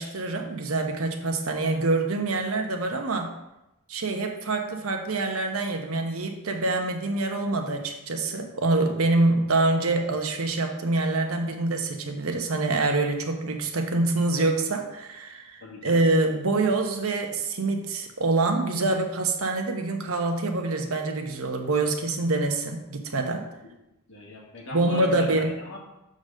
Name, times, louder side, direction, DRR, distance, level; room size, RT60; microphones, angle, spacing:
voice 1, 0.0-3.3 3.9-23.4 24.7-25.5, right 2 dB, 80° right, 4 dB, 1.0 m, -25 dB
voice 2, 15.6-16.0 24.1-25.3 25.6-25.8, left 1 dB, 60° left, -3 dB, 2.0 m, -39 dB
6.4 x 4.0 x 6.4 m, 0.92 s
head